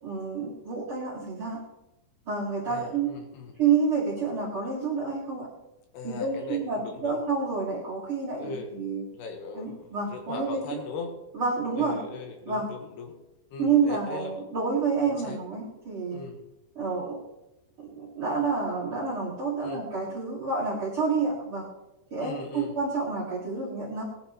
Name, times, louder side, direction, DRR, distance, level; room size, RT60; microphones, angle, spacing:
voice 1, 0.0-1.6 2.3-3.1 3.6-5.5 6.0-9.0 9.5-10.6 11.3-12.0 12.5-12.6 13.6-16.2 16.8-17.2 17.8-21.6 22.1-24.0, right 5 dB, 40° right, -4 dB, 2.3 m, -28 dB
voice 2, 2.7-3.5 5.9-7.2 8.3-8.7 9.1-11.1 11.8-13.1 13.5-14.4 15.0-15.4 16.1-16.4 19.6-19.8 22.2-22.7, left 4 dB, 75° left, 3 dB, 3.0 m, -39 dB
19.5 x 11.5 x 3.1 m, 0.94 s
omnidirectional pair, 5.2 m